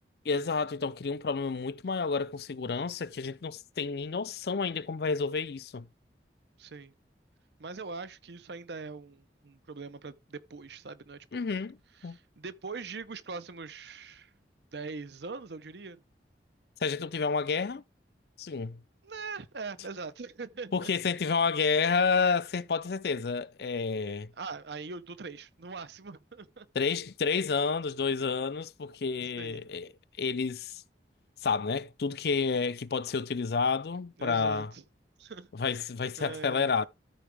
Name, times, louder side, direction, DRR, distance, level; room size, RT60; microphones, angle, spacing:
voice 1, 0.3-5.9 11.3-11.8 12.0-12.2 16.8-17.8 18.4-18.8 20.7-24.3 26.7-29.9 30.2-30.8 31.4-34.7 35.5-36.9, left 5 dB, 65° left, 0.5 m, -30 dB
voice 2, 6.6-6.9 7.6-11.4 12.0-14.3 14.7-16.0 19.0-20.9 24.4-26.7 29.4-29.6 34.2-34.8 35.2-35.5 36.2-36.9, right 4 dB, 75° right, 0.7 m, -42 dB
13.5 x 4.7 x 3.3 m
head